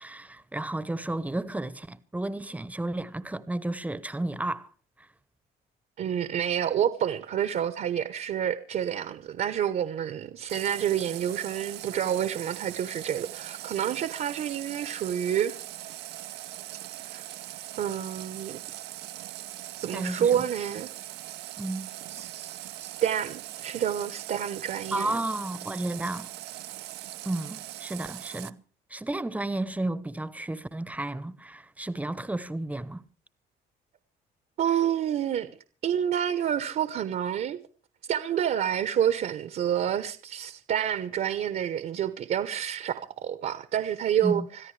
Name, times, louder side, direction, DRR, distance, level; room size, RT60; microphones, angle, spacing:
voice 1, 0.0-4.7 19.9-20.5 21.6-21.9 24.9-26.3 27.2-28.6 28.9-33.0 44.2-44.5, right 2 dB, 10° right, 0.9 m, -32 dB
voice 2, 6.0-15.5 17.0-17.2 17.8-18.6 19.8-20.9 22.1-25.2 34.6-35.5 35.8-37.6 38.1-44.4, right 9 dB, 55° right, 1.1 m, -28 dB
Water tap faucet, 10.5-28.5, right 15 dB, 80° right, 0.7 m, -41 dB
26.0 x 14.0 x 3.3 m
cardioid pair, 110°, 17 cm